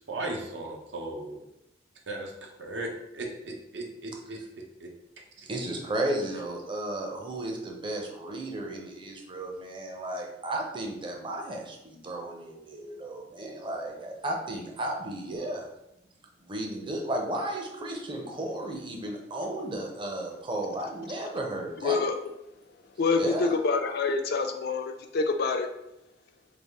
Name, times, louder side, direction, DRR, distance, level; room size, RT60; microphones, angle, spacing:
voice 1, 0.1-1.4 2.1-2.3 2.6-4.4 4.8-4.9 5.4-5.5, right 2 dB, 85° right, 1 dB, 0.7 m, -36 dB
voice 2, 5.5-15.6 16.4-22.0 23.2-23.5, right 1 dB, 30° right, 1 dB, 0.5 m, -34 dB
voice 3, 21.8-22.2 23.0-25.7, left 4 dB, 60° left, 5 dB, 0.4 m, -26 dB
3.4 x 2.3 x 3.5 m, 0.87 s
head